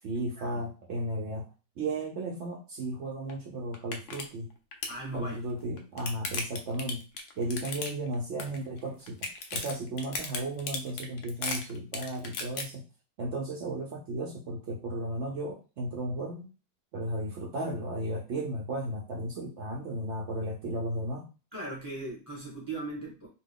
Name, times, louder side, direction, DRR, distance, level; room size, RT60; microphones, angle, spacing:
voice 1, 0.0-1.5 1.8-4.5 5.1-7.0 7.4-12.9 13.2-16.5 16.9-21.3, right 1 dB, 85° right, -1 dB, 0.6 m, -34 dB
sound 1, 3.3-3.4 3.7-4.2 4.5-5.0 5.6-8.1 8.4-8.8 9.1-12.6, left 4 dB, 90° left, 0.6 m, -35 dB
voice 2, 4.9-5.4 21.5-23.3, right 2 dB, 15° left, -4 dB, 0.8 m, -38 dB
3.0 x 2.2 x 3.5 m, 0.33 s
omnidirectional pair, 2.0 m